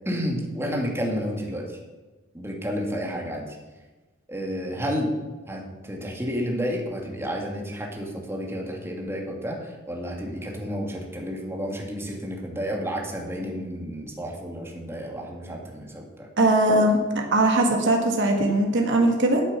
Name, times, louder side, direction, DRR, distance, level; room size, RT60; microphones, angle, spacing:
voice 1, 0.1-1.8 2.3-3.6 4.3-5.1 5.5-16.3, equal, 10° right, 0 dB, 2.1 m, -31 dB
voice 2, 16.4-19.4, right 1 dB, 60° right, 2 dB, 1.8 m, -20 dB
9.3 x 8.8 x 7.4 m, 1.2 s
head